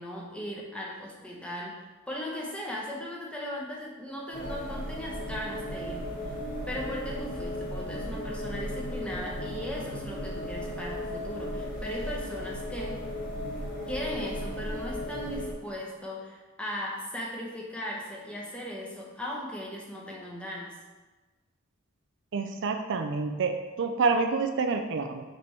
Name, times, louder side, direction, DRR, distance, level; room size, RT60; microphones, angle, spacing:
voice 1, 0.0-6.4 6.7-13.0 13.9-20.8, equal, 5° left, -3 dB, 1.0 m, -38 dB
sound 1, 4.3-15.5, equal, 40° left, 1.8 m, -35 dB
voice 2, 22.3-25.2, right 4 dB, 60° right, 6 dB, 0.4 m, -28 dB
6.6 x 3.4 x 4.5 m, 1.2 s
head